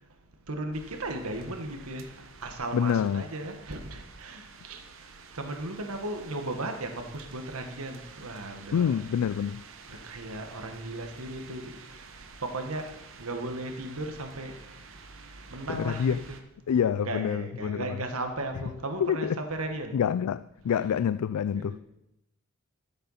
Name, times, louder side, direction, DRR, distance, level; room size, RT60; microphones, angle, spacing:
voice 1, 0.5-2.1 2.4-4.8 5.3-9.0 9.9-11.8 12.4-12.9 13.2-14.6 15.5-16.4 16.9-20.0 20.8-20.9 21.5-21.8, right 2 dB, 75° right, 1.6 m, -36 dB
sound 1, 0.7-16.4, right 4 dB, 60° right, 1.1 m, -49 dB
voice 2, 2.7-3.3 8.7-9.6 15.7-16.2 16.7-18.0 19.0-19.4 19.9-21.8, left 8 dB, 85° left, 0.3 m, -27 dB
13.5 x 7.9 x 5.7 m
head